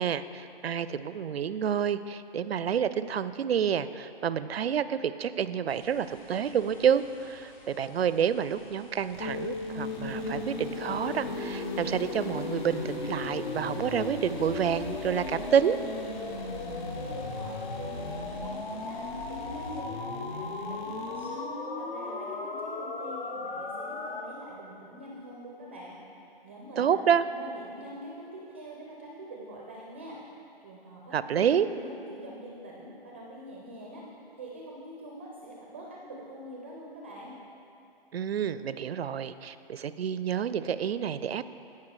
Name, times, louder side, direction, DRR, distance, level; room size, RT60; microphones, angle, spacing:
voice 1, 0.0-15.8 26.8-27.2 31.1-31.7 38.1-41.5, right 8 dB, 90° right, 14 dB, 0.5 m, -28 dB
sound 1, 5.7-19.8, left 2 dB, 35° left, 1.1 m, -54 dB
sound 2, 9.1-21.3, left 1 dB, 50° left, 1.2 m, -42 dB
sound 3, 9.2-24.2, left 3 dB, 65° left, 1.0 m, -36 dB
voice 2, 16.6-26.0 26.4-27.0 27.3-37.3, right 1 dB, 15° right, -3 dB, 0.4 m, -45 dB
16.5 x 5.7 x 3.2 m, 2.7 s
hypercardioid pair, 155°, 30 cm